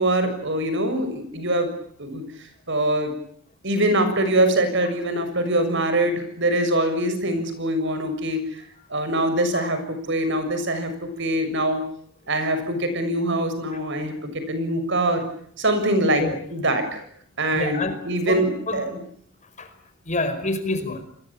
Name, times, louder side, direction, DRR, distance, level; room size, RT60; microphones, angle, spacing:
voice 1, 0.0-1.7 2.0-2.2 2.7-3.1 3.6-8.6 8.9-11.8 12.3-15.2 15.6-17.0 17.4-19.0, right 1 dB, 55° right, 9 dB, 6.8 m, -23 dB
voice 2, 17.5-18.0 18.3-18.4 18.7-18.8 19.6-19.7 20.0-21.0, left 2 dB, 35° left, 8 dB, 5.1 m, -27 dB
29.5 x 22.5 x 8.6 m, 0.64 s
head